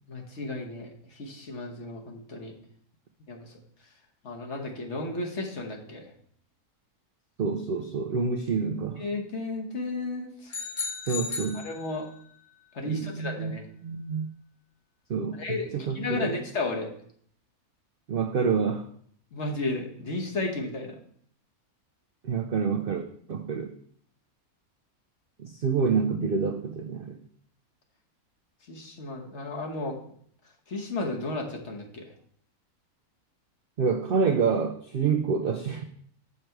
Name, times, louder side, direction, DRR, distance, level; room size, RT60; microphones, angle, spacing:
voice 1, 0.1-2.5 3.3-3.5 4.2-6.1 9.0-10.5 11.5-12.1 12.7-13.6 15.3-16.9 19.3-21.0 28.7-30.0 30.7-32.1, left 2 dB, 50° left, 2 dB, 1.4 m, -33 dB
voice 2, 7.4-9.0 11.1-11.6 12.8-13.5 13.8-14.3 15.1-16.3 18.1-18.8 22.2-23.7 25.4-27.2 33.8-35.8, right 5 dB, 65° right, 6 dB, 0.5 m, -27 dB
sound 1, 10.5-12.3, left 5 dB, 75° left, 2.3 m, -35 dB
6.7 x 6.6 x 4.5 m, 0.62 s
omnidirectional pair, 1.6 m